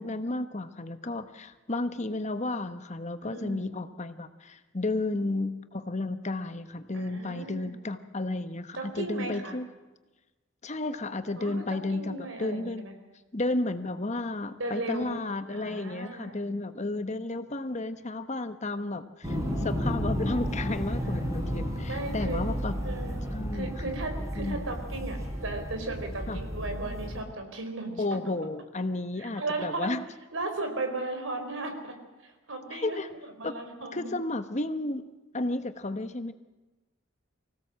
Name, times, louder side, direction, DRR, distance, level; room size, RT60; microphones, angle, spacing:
voice 1, 0.0-9.7 10.6-12.1 12.4-12.9 13.3-22.7 23.3-23.7 24.3-24.7 26.3-26.4 28.0-30.0 32.7-33.1 33.4-33.5 33.9-35.1 35.3-36.3, left 2 dB, 35° left, 10 dB, 1.1 m, -32 dB
voice 2, 3.2-3.8 6.9-7.7 8.7-9.6 11.4-12.9 14.6-15.2 15.5-16.4 21.0-21.3 21.9-22.4 22.8-23.1 23.5-28.0 29.2-29.9 30.3-32.0 32.2-33.0 33.2-34.1, right 2 dB, 75° right, 5 dB, 4.3 m, -36 dB
sound 1, 19.2-27.2, equal, 15° right, 4.1 m, -32 dB
25.0 x 17.0 x 7.6 m, 1.2 s
head